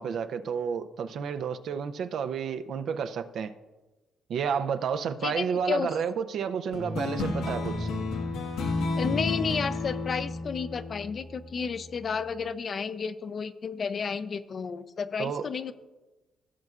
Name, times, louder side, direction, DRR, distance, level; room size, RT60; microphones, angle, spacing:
voice 1, 0.0-3.5 4.3-7.9 15.2-15.5, right 7 dB, 70° right, 0.5 m, -31 dB
voice 2, 5.2-5.9 9.0-15.7, left 5 dB, 45° left, 0.5 m, -32 dB
sound 1, 6.7-11.7, left 3 dB, 90° left, 1.5 m, -31 dB
16.0 x 6.5 x 2.4 m
cardioid pair, 90°, 0 cm